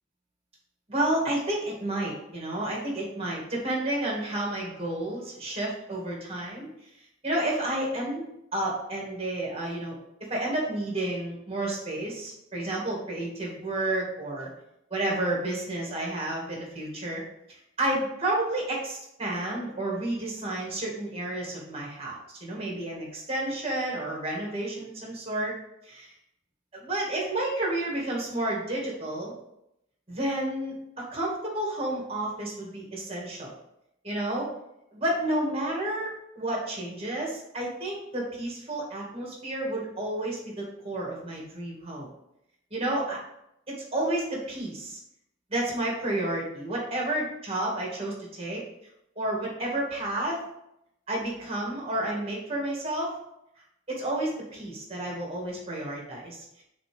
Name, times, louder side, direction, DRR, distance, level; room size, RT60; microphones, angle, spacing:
voice 1, 0.9-6.7 7.2-9.9 10.3-14.5 14.9-17.2 17.8-25.5 25.8-26.1 26.7-29.3 30.1-33.5 34.0-34.5 34.9-42.1 42.7-43.2 43.7-45.0 45.5-48.6 49.2-50.4 51.1-53.1 53.9-56.6, right 1 dB, 30° right, -3 dB, 2.5 m, -31 dB
6.0 x 4.2 x 5.3 m, 0.81 s
head